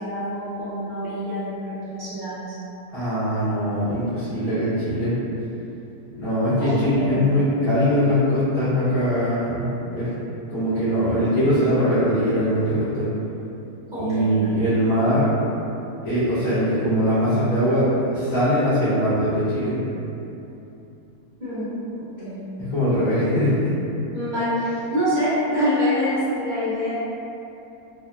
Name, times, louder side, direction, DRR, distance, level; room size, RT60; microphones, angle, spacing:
voice 1, 0.0-2.5 6.6-7.2 13.9-14.6 21.4-21.7 22.2-22.5 24.1-26.9, equal, 35° right, -15 dB, 1.0 m, -26 dB
voice 2, 2.9-5.1 6.1-10.1 10.5-13.1 13.9-15.3 16.0-19.7 22.6-23.7, equal, 75° left, -17 dB, 1.6 m, -21 dB
4.0 x 2.0 x 2.3 m, 2.8 s
omnidirectional pair, 1.7 m